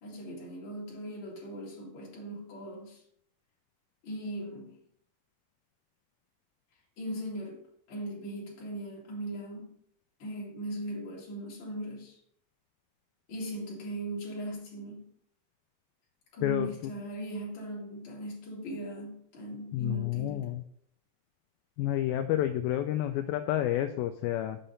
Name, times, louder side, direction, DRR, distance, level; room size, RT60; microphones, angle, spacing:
voice 1, 0.0-3.0 4.0-4.7 7.0-7.6 7.9-9.7 10.2-12.2 13.3-15.1 16.3-20.5, right 1 dB, 40° left, 2.6 m, -39 dB
voice 2, 16.4-16.9 19.7-20.6 21.8-24.6, left 12 dB, 80° left, 2.3 m, -30 dB
6.7 x 5.7 x 5.1 m
omnidirectional pair, 4.4 m